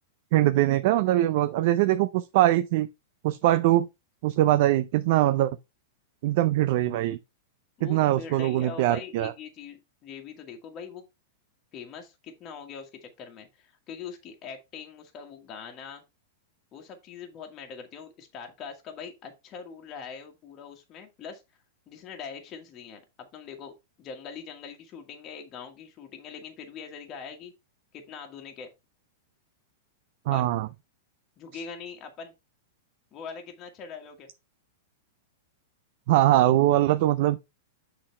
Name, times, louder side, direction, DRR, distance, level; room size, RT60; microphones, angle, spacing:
voice 1, 0.3-2.9 3.2-3.9 4.2-5.5 6.2-7.2 7.8-9.3 30.3-30.7 36.1-37.4, right 14 dB, 55° right, 0.4 m, -22 dB
voice 2, 7.8-11.0 11.7-16.0 16.7-21.4 21.9-27.5 27.9-28.7 30.3-30.5 31.4-32.3 33.1-34.3, left 6 dB, 30° left, 1.5 m, -42 dB
6.5 x 4.0 x 4.4 m
supercardioid pair, 145°, 0 cm